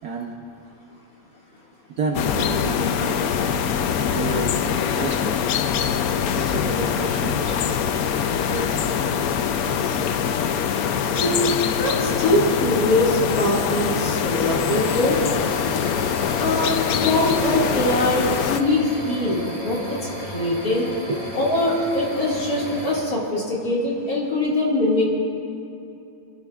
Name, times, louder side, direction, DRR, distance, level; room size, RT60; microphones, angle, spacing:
voice 1, 0.0-0.5 2.0-4.5 4.8-5.6 6.3-9.6 13.9-14.0 21.1-21.2, right 3 dB, 60° right, 0 dB, 1.2 m, -32 dB
sound 1, 2.1-18.6, left 8 dB, 90° left, 0.7 m, -23 dB
voice 2, 11.0-15.2 16.4-20.9 21.4-25.0, left 1 dB, 45° left, -5 dB, 2.6 m, -22 dB
sound 2, 14.7-23.0, equal, 15° left, 2.4 m, -33 dB
29.0 x 10.5 x 2.4 m, 2.7 s
omnidirectional pair, 2.2 m